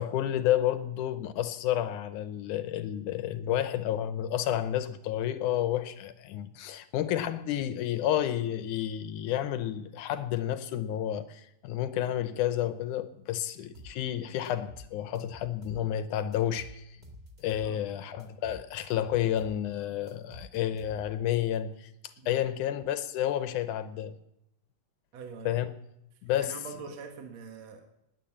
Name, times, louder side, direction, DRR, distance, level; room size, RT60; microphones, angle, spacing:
voice 1, 0.0-16.8 17.4-21.9 22.3-24.2 25.5-25.7 26.2-26.6, left 11 dB, 75° left, 2.0 m, -30 dB
sound 1, 13.7-14.0 14.4-15.9 16.3-17.7 18.2-19.6 20.1-21.3, equal, 35° right, 0.7 m, -50 dB
voice 2, 25.1-25.6 26.4-27.9, right 5 dB, 55° right, 2.3 m, -44 dB
20.0 x 9.4 x 7.2 m
omnidirectional pair, 4.1 m